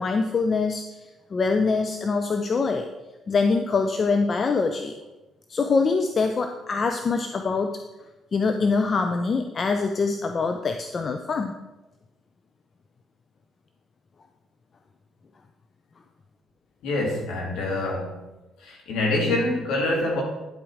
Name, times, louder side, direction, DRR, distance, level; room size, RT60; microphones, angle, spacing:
voice 1, 0.0-2.9 3.3-4.9 5.5-7.8 8.3-11.5, left 4 dB, 45° left, 6 dB, 0.8 m, -24 dB
voice 2, 16.8-18.2 18.6-20.2, left 2 dB, 65° left, -1 dB, 3.0 m, -25 dB
10.5 x 7.8 x 4.9 m, 1.1 s
hypercardioid pair, 45°, 0 cm